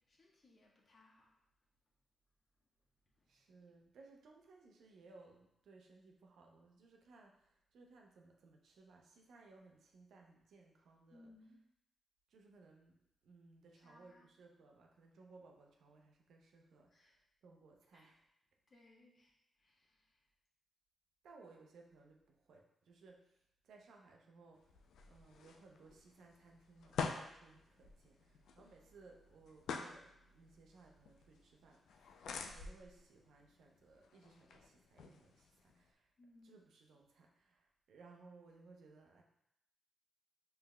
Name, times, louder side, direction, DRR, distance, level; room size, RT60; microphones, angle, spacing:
voice 1, 0.0-1.4 3.1-3.3 11.1-11.6 13.8-14.3 16.9-17.2 17.9-18.1 18.7-20.3 36.2-36.6, left 2 dB, 55° left, -2 dB, 1.1 m, -65 dB
voice 2, 3.3-11.3 12.3-18.2 21.2-24.8 25.1-36.1 36.4-39.2, right 3 dB, 80° right, 1 dB, 0.6 m, -62 dB
sound 1, 24.6-35.9, left 5 dB, 80° left, 0.3 m, -49 dB
5.2 x 3.3 x 2.2 m, 0.81 s
cardioid pair, 60°, 0 cm